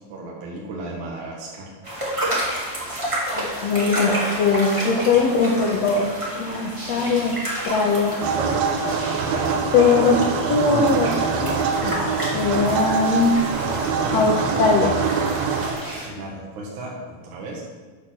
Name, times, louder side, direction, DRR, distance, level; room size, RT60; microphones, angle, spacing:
voice 1, 0.1-1.7 10.7-10.9 13.8-14.2 16.1-17.6, right 2 dB, 60° right, -4 dB, 2.8 m, -35 dB
sound 1, 1.8-16.1, right 1 dB, 15° right, 1.4 m, -30 dB
voice 2, 3.4-4.1 4.4-6.1 6.4-7.3 7.7-8.2 9.7-10.2 10.5-11.5 11.8-11.9 12.3-13.4 14.1-15.0, left 4 dB, 80° left, -1 dB, 1.5 m, -20 dB
sound 2, 8.2-15.7, right 5 dB, 80° right, 2.7 m, -24 dB
8.8 x 6.4 x 6.2 m, 1.4 s
omnidirectional pair, 4.3 m